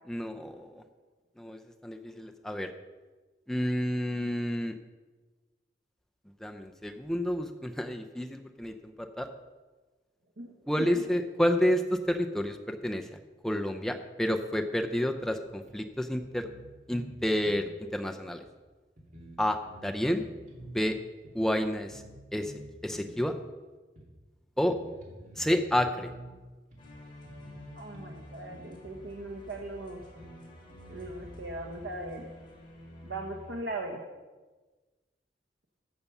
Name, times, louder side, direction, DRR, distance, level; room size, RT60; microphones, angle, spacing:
voice 1, 0.1-0.8 1.4-2.7 3.5-4.8 6.4-9.3 10.7-13.2 13.4-16.5 16.9-18.4 19.4-20.3 20.7-21.0 21.3-22.0 22.3-22.5 22.8-23.4 24.6-24.8 25.3-26.1, equal, 5° left, 5 dB, 0.6 m, -30 dB
voice 2, 10.4-11.0 27.8-30.0 30.9-32.3 33.0-34.0, right 2 dB, 80° right, 2 dB, 1.1 m, -39 dB
sound 1, 15.2-15.3 15.7-15.8 16.2-17.2 17.4-17.7 18.4-18.5 19.0-20.8 21.2-21.3 21.9-22.2 22.4-23.2 24.0-24.1 24.6-26.3 26.7-26.8 27.2-28.2 28.5-28.7 29.5-29.6 30.0-31.3, right 1 dB, 45° right, 2.9 m, -49 dB
Epic Orchestra, 26.8-33.6, left 1 dB, 30° left, 3.1 m, -49 dB
14.0 x 6.9 x 5.5 m, 1.3 s
head